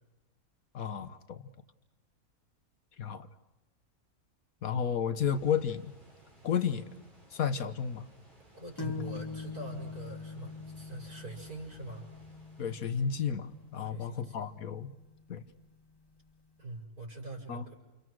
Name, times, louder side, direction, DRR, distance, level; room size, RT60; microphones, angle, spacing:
voice 1, 0.7-1.4 3.0-3.3 4.6-5.9 6.4-6.9 7.3-8.1 12.6-14.9 15.3-15.4 17.5-17.6, left 7 dB, 70° left, 11 dB, 1.6 m, -32 dB
sound 1, 5.2-13.9, right 2 dB, 30° right, 6.3 m, -60 dB
voice 2, 8.5-12.1 13.8-14.5 16.6-17.7, right 1 dB, 75° right, 0 dB, 6.0 m, -43 dB
sound 2, 8.8-16.3, left 4 dB, 20° left, 1.0 m, -44 dB
29.5 x 28.5 x 6.3 m, 1.1 s
omnidirectional pair, 1.6 m